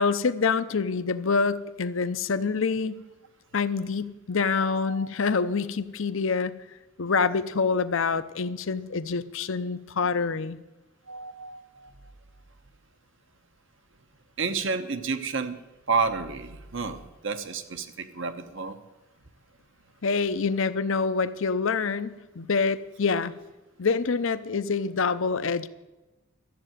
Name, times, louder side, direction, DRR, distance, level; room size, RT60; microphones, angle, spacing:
voice 1, 0.0-3.0 3.5-6.5 7.0-10.6 20.0-23.3 23.8-25.7, left 5 dB, 60° left, 13 dB, 0.6 m, -26 dB
voice 2, 4.6-5.1 11.1-11.9 14.4-15.6 15.9-18.8, right 4 dB, 55° right, 9 dB, 1.1 m, -30 dB
13.5 x 7.7 x 9.1 m, 1.1 s
head